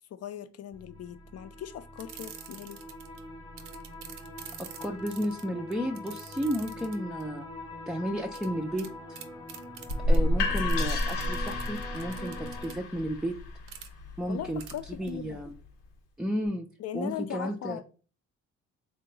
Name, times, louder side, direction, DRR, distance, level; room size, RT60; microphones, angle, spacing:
voice 1, 0.1-2.8 6.8-6.9 14.3-15.4 16.8-17.8, left 10 dB, 55° left, 0.5 m, -39 dB
sound 1, 0.7-12.7, left 1 dB, 15° left, 0.8 m, -44 dB
sound 2, 2.0-3.2 3.6-7.2 8.3-8.5 8.8-8.9 9.1-10.2 10.6-12.7 13.7-13.9 14.6-14.8 15.1-15.2, right 9 dB, 85° right, 0.6 m, -46 dB
voice 2, 4.8-7.5 7.9-9.2 10.1-13.4 14.2-15.5 16.2-16.7 16.9-17.8, equal, 5° right, 0.4 m, -33 dB
sound 3, 9.9-15.7, left 1 dB, 90° left, 0.9 m, -30 dB
3.9 x 2.2 x 3.8 m
cardioid pair, 90°, 30 cm